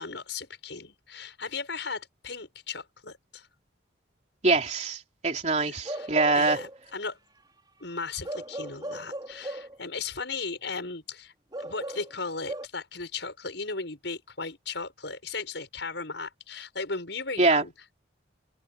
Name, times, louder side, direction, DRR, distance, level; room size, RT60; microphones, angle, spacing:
voice 1, 0.0-3.5 5.6-7.2 7.8-11.3 11.6-17.7, left 4 dB, 70° left, 6.1 m, -36 dB
voice 2, 4.4-6.6 17.4-17.6, right 3 dB, 35° right, 3.5 m, -24 dB
Bark / Livestock farm animals working animals, 5.8-6.8 8.2-9.8 11.5-12.7, right 1 dB, 20° right, 4.8 m, -37 dB
open air
head